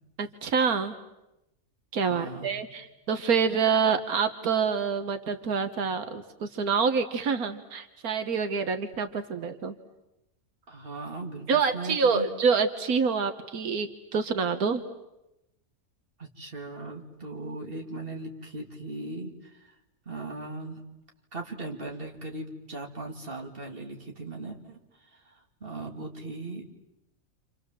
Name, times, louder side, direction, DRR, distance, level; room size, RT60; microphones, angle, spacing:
voice 1, 0.2-0.9 1.9-9.7 11.5-14.8, right 5 dB, 85° right, 8 dB, 1.7 m, -27 dB
voice 2, 2.1-2.5 10.7-12.3 16.2-19.7 20.1-20.8 21.3-24.8 25.1-26.6, right 2 dB, 40° right, 2 dB, 3.0 m, -38 dB
29.5 x 27.0 x 7.5 m, 0.91 s
omnidirectional pair, 1.5 m